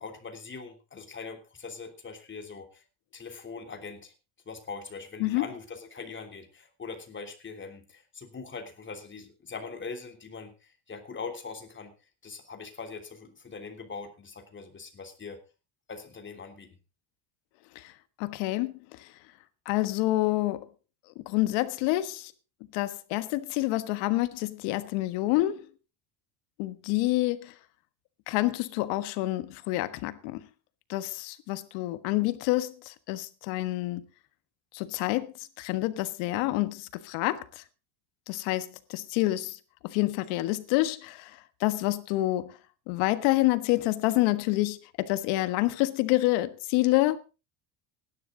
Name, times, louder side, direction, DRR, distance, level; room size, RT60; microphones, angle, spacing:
voice 1, 0.0-2.8 3.1-4.1 4.4-11.9 12.2-15.4 15.9-16.8, left 4 dB, 25° left, 3.3 m, -42 dB
voice 2, 18.2-18.7 19.6-20.7 21.3-22.3 22.7-25.6 26.6-27.5 28.3-30.4 30.9-34.0 34.7-35.3 35.6-37.4 38.3-39.6 39.8-41.3 41.6-42.6 42.9-47.2, left 18 dB, 85° left, 1.5 m, -27 dB
17.0 x 11.5 x 3.9 m
cardioid pair, 120°, 45 cm